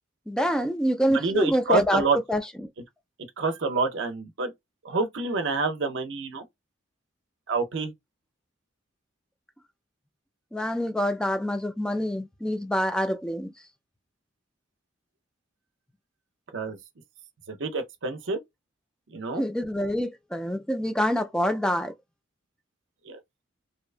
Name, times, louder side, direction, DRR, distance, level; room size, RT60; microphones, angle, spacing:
voice 1, 0.3-2.0 2.3-2.4 10.5-13.5 19.4-21.9, equal, 5° left, 0.3 m, -26 dB
voice 2, 1.1-2.2 3.4-4.5 4.8-6.5 7.5-7.9 16.5-16.8 17.5-18.4 19.1-19.4 23.0-23.2, right 4 dB, 65° right, 0.6 m, -27 dB
2.7 x 2.2 x 2.4 m
head